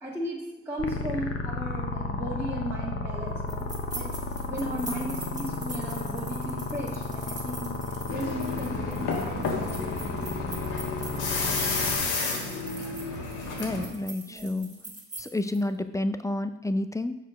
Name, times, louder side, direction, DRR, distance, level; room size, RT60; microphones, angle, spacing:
voice 1, 0.0-3.7 3.9-4.1 4.5-7.7 8.1-10.3 10.9-11.0 12.9-13.1 13.8-13.9 14.3-14.8, equal, 10° right, -7 dB, 1.8 m, -36 dB
sound 1, 0.8-12.0, left 3 dB, 45° left, 0.9 m, -33 dB
sound 2, 3.5-15.6, right 2 dB, 25° right, 2.1 m, -43 dB
sound 3, 8.1-13.9, left 3 dB, 80° left, 1.6 m, -31 dB
voice 2, 13.6-14.7 15.2-17.2, left 2 dB, 10° left, 10 dB, 0.4 m, -29 dB
6.6 x 4.9 x 5.1 m, 0.95 s
cardioid pair, 90°, 30 cm